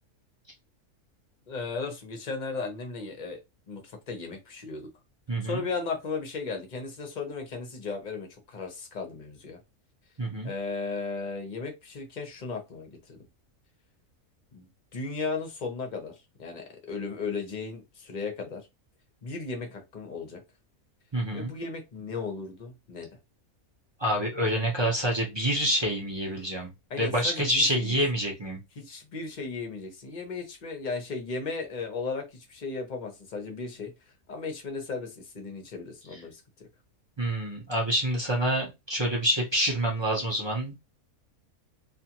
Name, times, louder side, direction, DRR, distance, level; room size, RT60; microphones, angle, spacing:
voice 1, 1.5-3.4 3.7-4.9 5.4-9.6 10.4-13.3 14.5-18.6 19.2-20.4 21.3-23.1 26.9-28.0 28.8-33.9 34.3-36.4, left 4 dB, 45° left, 0.6 m, -36 dB
voice 2, 5.3-5.6 10.2-10.5 21.1-21.5 24.0-26.7 27.0-28.6 37.2-40.7, equal, 35° right, 0.4 m, -27 dB
2.4 x 2.4 x 2.8 m
omnidirectional pair, 1.5 m